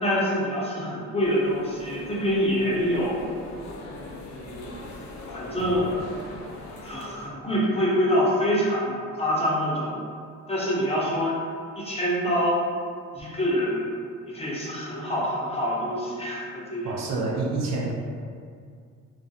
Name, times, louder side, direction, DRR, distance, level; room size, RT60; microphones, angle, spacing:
voice 1, 0.0-3.2 3.9-4.7 5.3-5.9 6.8-10.0 10.5-11.3 11.8-12.6 13.1-13.8 14.3-16.9, equal, 20° left, -6 dB, 0.7 m, -26 dB
sound 1, 1.2-7.3, left 2 dB, 65° left, 0.5 m, -40 dB
voice 2, 16.8-17.9, right 3 dB, 60° right, -3 dB, 0.5 m, -27 dB
2.3 x 2.1 x 2.6 m, 2.2 s
cardioid pair, 90°, 30 cm